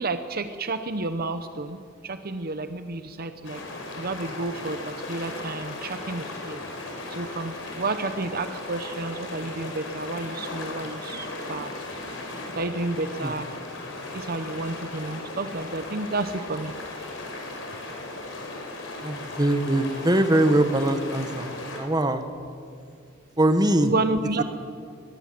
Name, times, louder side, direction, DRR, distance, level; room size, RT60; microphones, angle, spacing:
voice 1, 0.0-3.6 3.9-6.6 7.1-11.7 12.6-13.5 14.1-16.7 23.8-24.4, right 2 dB, 50° right, 9 dB, 0.8 m, -30 dB
sound 1, 3.4-21.8, left 2 dB, 70° left, 5.5 m, -37 dB
voice 2, 19.0-21.5 21.8-22.3 23.4-23.9, right 1 dB, 20° right, 8 dB, 1.4 m, -22 dB
22.5 x 20.5 x 7.6 m, 2.3 s
head